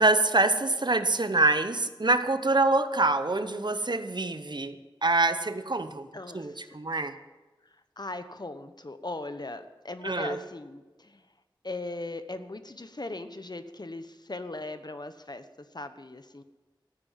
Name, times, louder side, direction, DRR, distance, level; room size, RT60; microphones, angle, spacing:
voice 1, 0.0-6.1 6.3-7.2 10.0-10.4, right 2 dB, 55° right, 11 dB, 0.9 m, -25 dB
voice 2, 6.1-6.8 8.0-11.2 11.6-16.4, left 2 dB, 50° left, 10 dB, 1.0 m, -39 dB
14.0 x 9.6 x 7.4 m, 1.2 s
wide cardioid pair, 45°, 9 cm